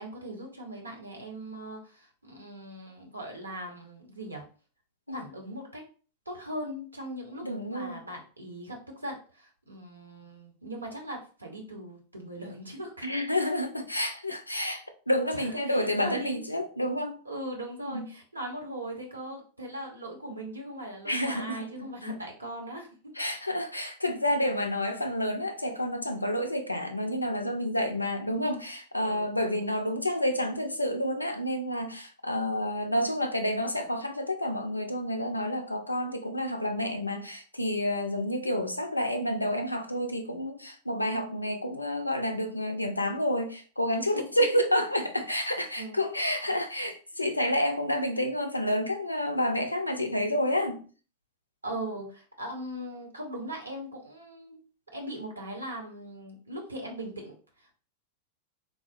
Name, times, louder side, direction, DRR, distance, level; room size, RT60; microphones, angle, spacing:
voice 1, 0.0-4.4 5.1-5.8 6.3-13.1 15.3-16.4 17.3-23.1 28.9-29.7 44.1-44.2 45.8-46.0 51.6-54.6 54.9-57.7, right 1 dB, 80° right, 0.7 m, -40 dB
voice 2, 7.4-8.0 13.0-17.2 17.8-18.1 21.1-22.2 23.2-50.8, left 1 dB, 85° left, 0.4 m, -29 dB
3.6 x 2.0 x 2.5 m
figure-of-eight pair, 90°, 0 cm